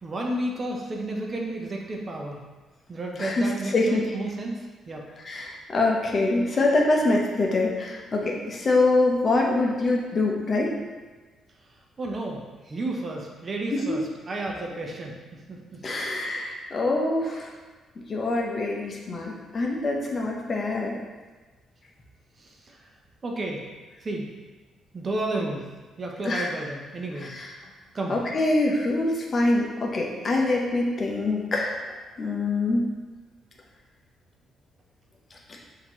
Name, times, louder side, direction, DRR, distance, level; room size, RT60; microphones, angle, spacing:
voice 1, 0.0-2.4 2.9-4.6 4.9-5.1 12.0-16.2 22.4-22.8 23.2-23.6 24.0-24.3 24.9-25.7 26.0-27.4 27.9-28.2, right 2 dB, 35° right, 0 dB, 0.7 m, -32 dB
voice 2, 3.2-4.0 5.2-10.7 13.7-14.0 15.8-17.5 18.1-20.9 26.2-26.5 27.2-27.5 28.1-31.8 32.2-32.9, left 2 dB, 40° left, -1 dB, 0.8 m, -24 dB
5.7 x 2.8 x 3.0 m, 1.3 s
cardioid pair, 90°, 0 cm